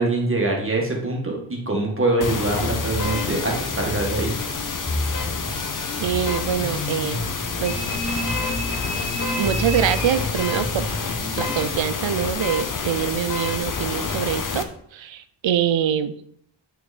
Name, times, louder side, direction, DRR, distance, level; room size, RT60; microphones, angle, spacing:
voice 1, 0.0-4.3, right 2 dB, 30° right, -1 dB, 1.8 m, -24 dB
sound 1, 2.2-14.6, left 5 dB, 45° left, 0.8 m, -28 dB
sound 2, 2.5-11.7, left 1 dB, 10° left, 0.9 m, -31 dB
voice 2, 6.0-7.2 7.6-7.9 9.4-10.9 11.4-14.7 14.9-16.2, right 9 dB, 80° right, 13 dB, 0.7 m, -24 dB
sound 3, 7.6-11.0, equal, 70° left, 1.5 m, -33 dB
8.6 x 5.8 x 4.2 m, 0.67 s
wide cardioid pair, 170°, 45 cm